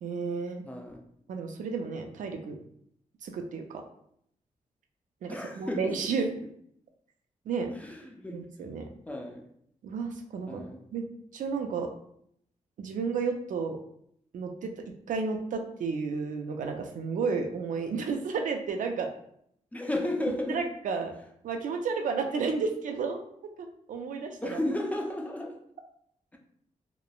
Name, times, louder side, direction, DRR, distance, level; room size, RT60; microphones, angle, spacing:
voice 1, 0.0-0.6 1.3-2.6 3.2-3.8 5.2-6.3 7.5-7.7 8.3-8.9 9.8-10.6 10.9-11.0 11.3-11.9 12.8-13.8 14.3-14.7 15.1-19.1 20.5-21.2 21.4-23.2 23.9-24.6, right 5 dB, 75° right, 4 dB, 0.4 m, -32 dB
voice 2, 0.6-1.0 5.3-5.9 7.8-8.4 9.1-9.5 10.5-10.8 19.7-20.6 24.4-25.6, left 1 dB, 10° left, 1 dB, 0.4 m, -33 dB
3.0 x 2.0 x 2.3 m, 0.69 s
wide cardioid pair, 110°, 13 cm